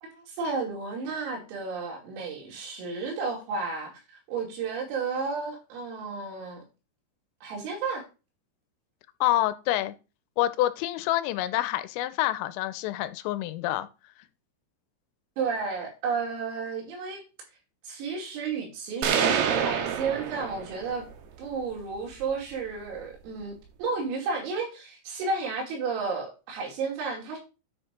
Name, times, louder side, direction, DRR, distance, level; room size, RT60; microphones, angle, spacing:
voice 1, 0.0-4.0 4.3-6.6 7.4-8.1 15.4-17.2 17.9-21.1 21.4-27.4, right 4 dB, 90° right, 5.4 m, -32 dB
voice 2, 9.2-9.9 10.4-13.9, left 14 dB, 90° left, 3.2 m, -27 dB
sound 1, 19.0-21.0, right 8 dB, 75° right, 2.6 m, -26 dB
9.6 x 4.5 x 5.1 m
omnidirectional pair, 5.8 m